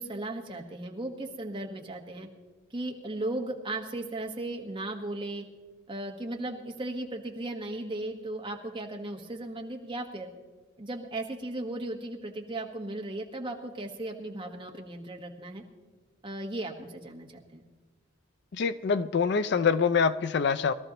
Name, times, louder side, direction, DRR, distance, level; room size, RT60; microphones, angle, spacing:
voice 1, 0.0-2.3 2.7-5.4 5.9-10.3 10.8-15.6 16.2-17.7, right 2 dB, 25° right, 1 dB, 1.3 m, -36 dB
voice 2, 18.5-20.7, left 5 dB, 55° left, 14 dB, 0.4 m, -25 dB
21.5 x 13.0 x 3.0 m, 1.3 s
head